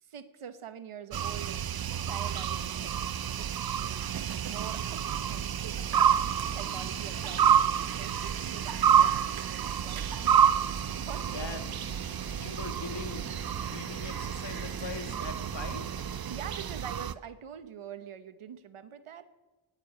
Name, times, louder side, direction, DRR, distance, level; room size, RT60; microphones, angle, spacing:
voice 1, 0.0-1.7 2.0-6.2 6.5-7.7 8.0-10.5 10.9-11.5 16.3-19.3, right 8 dB, 85° right, 11 dB, 1.1 m, -45 dB
sound 1, 1.1-17.1, right 9 dB, 50° right, 0.5 m, -29 dB
sound 2, 6.1-16.2, left 1 dB, 10° left, 1.5 m, -50 dB
voice 2, 11.3-11.7 12.3-16.1, left 5 dB, 60° left, 7 dB, 1.6 m, -42 dB
19.0 x 6.9 x 8.4 m, 1.2 s
wide cardioid pair, 135°, 49 cm